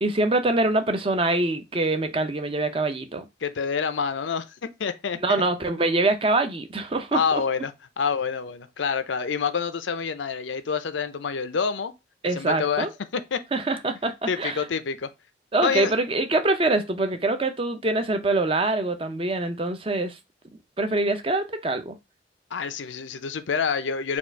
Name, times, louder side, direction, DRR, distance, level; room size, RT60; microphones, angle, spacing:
voice 1, 0.0-3.2 5.2-7.2 12.2-12.9 13.5-14.6 15.5-20.2 20.8-22.0, right 2 dB, 30° right, 0.5 m, -24 dB
voice 2, 3.4-4.5 4.8-5.4 7.1-7.7 8.0-11.9 12.3-12.9 13.1-13.4 14.3-15.1 15.6-15.9 22.5-24.2, left 6 dB, 85° left, 0.6 m, -27 dB
4.4 x 2.4 x 4.4 m
head